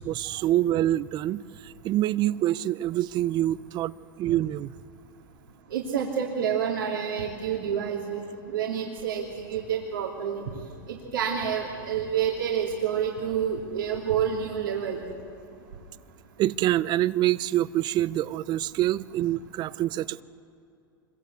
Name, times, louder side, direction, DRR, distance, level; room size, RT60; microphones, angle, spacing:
voice 1, 0.0-3.9 4.2-4.7 16.4-20.2, right 14 dB, 40° right, 18 dB, 0.7 m, -26 dB
voice 2, 5.7-10.4 10.9-15.0, right 8 dB, 85° right, -2 dB, 3.1 m, -28 dB
25.0 x 22.5 x 8.3 m, 2.5 s
hypercardioid pair, 105°, 11 cm